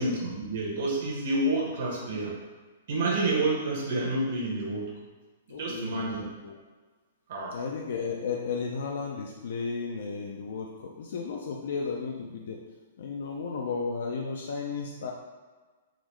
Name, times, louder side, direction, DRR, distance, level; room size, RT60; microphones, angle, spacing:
voice 1, 0.0-2.3 2.9-4.9 5.5-6.2 7.3-7.6, right 2 dB, 55° right, -3 dB, 1.0 m, -29 dB
voice 2, 5.5-6.6 7.5-12.6 13.0-15.1, left 5 dB, 70° left, 0 dB, 0.4 m, -34 dB
3.7 x 2.1 x 3.1 m, 1.3 s
hypercardioid pair, 155°, 0 cm